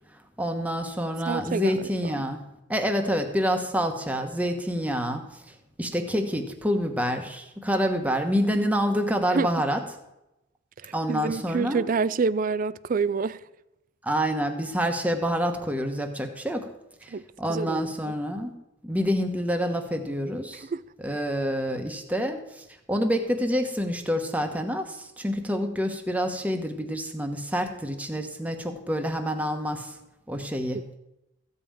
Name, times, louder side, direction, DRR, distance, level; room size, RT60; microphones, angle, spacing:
voice 1, 0.4-9.8 10.9-11.8 14.0-16.7 17.0-18.5 18.8-20.7 21.0-29.9 30.3-30.8, equal, 5° right, 1.1 m, -27 dB
voice 2, 1.3-2.2 9.3-9.5 10.8-13.4 17.1-17.2 17.5-18.1 20.7-20.8 30.7-30.8, right 4 dB, 40° right, 0.4 m, -28 dB
14.5 x 5.6 x 8.7 m
head